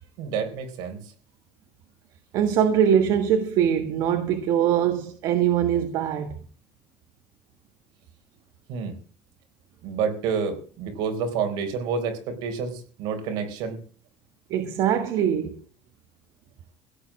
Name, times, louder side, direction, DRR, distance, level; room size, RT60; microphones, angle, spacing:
voice 1, 0.2-1.0 8.7-8.9 9.8-13.8, right 6 dB, 75° right, 4.1 m, -29 dB
voice 2, 2.3-6.3 14.5-15.6, right 9 dB, 55° right, 1.5 m, -22 dB
16.5 x 8.6 x 7.2 m
cardioid pair, 180°, 8 cm